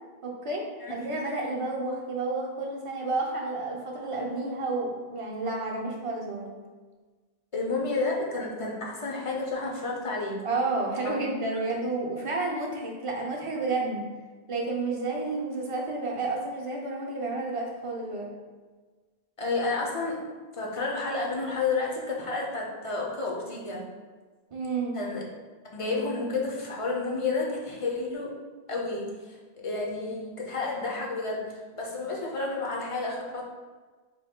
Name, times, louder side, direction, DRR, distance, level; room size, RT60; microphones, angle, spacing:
voice 1, 0.2-6.5 10.4-14.0 14.5-18.3 24.5-25.0, right 3 dB, 40° right, -1 dB, 0.6 m, -31 dB
voice 2, 7.5-10.4 11.0-11.2 11.5-11.6 19.4-20.2 20.5-23.9 24.9-25.2 25.7-28.3 28.7-29.4 29.6-33.4, left 3 dB, 40° left, -2 dB, 0.6 m, -31 dB
3.7 x 2.6 x 3.6 m, 1.4 s
omnidirectional pair, 1.1 m